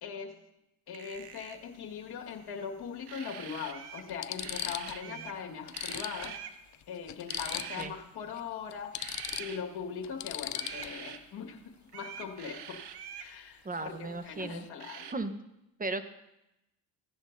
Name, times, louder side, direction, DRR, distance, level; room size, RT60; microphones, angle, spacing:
voice 1, 0.0-0.3 0.9-6.4 6.9-8.9 9.4-11.6 11.9-12.8 13.2-15.1, left 6 dB, 60° left, 1 dB, 1.9 m, -40 dB
sound 1, 0.9-1.7 3.0-4.1 4.4-5.4 5.7-6.6 7.3-7.9 9.0-9.6 10.5-11.2 11.9-13.3 14.8-15.1, right 8 dB, 65° right, 1.0 m, -44 dB
sound 2, 1.2-1.3 2.8-2.9 3.6-3.7 4.1-5.0 5.3-5.4 5.7-8.0 8.3-8.4 8.7-11.1 13.7-13.9 14.2-14.7, left 13 dB, 45° left, 0.5 m, -39 dB
voice 2, 13.6-14.6 15.1-15.3 15.8-16.1, right 2 dB, 20° right, 9 dB, 1.0 m, -36 dB
17.0 x 10.5 x 2.7 m, 0.89 s
supercardioid pair, 80°, 42 cm